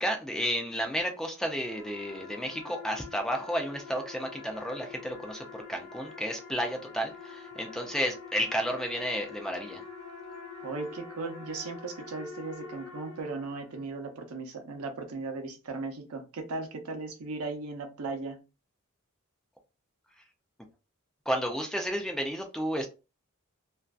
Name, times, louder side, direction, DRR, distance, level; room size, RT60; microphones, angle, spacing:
voice 1, 0.0-9.8 21.3-22.9, equal, ahead, 3 dB, 0.4 m, -32 dB
sound 1, 1.2-13.9, left 5 dB, 70° left, 0.8 m, -46 dB
voice 2, 10.6-18.4, right 3 dB, 80° right, 5 dB, 0.6 m, -37 dB
2.5 x 2.2 x 2.2 m, 0.30 s
head